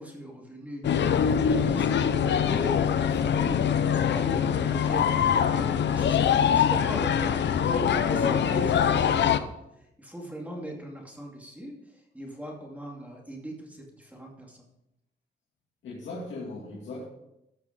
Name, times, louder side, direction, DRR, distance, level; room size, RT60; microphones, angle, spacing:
voice 1, 0.0-3.6 4.0-7.4 7.7-9.5 10.0-14.6, equal, 10° right, 2.4 m, -39 dB
sound 1, 0.8-9.4, left 8 dB, 70° left, 0.7 m, -23 dB
voice 2, 8.2-8.5 15.8-17.0, left 2 dB, 85° left, 2.2 m, -38 dB
13.5 x 5.9 x 4.9 m
cardioid pair, 105°, 19 cm